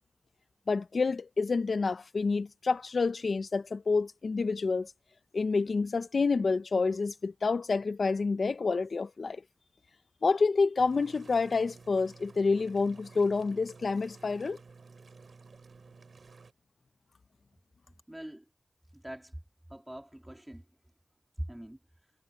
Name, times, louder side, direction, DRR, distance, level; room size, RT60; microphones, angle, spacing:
voice 1, 0.7-4.9 5.3-9.4 10.2-14.6, left 4 dB, 70° left, 0.6 m, -28 dB
sound 1, 10.8-16.5, right 4 dB, 75° right, 4.5 m, -53 dB
voice 2, 18.1-18.4 18.9-19.4 19.7-20.6 21.4-21.8, right 1 dB, 10° right, 2.9 m, -42 dB
cardioid pair, 50°, 0 cm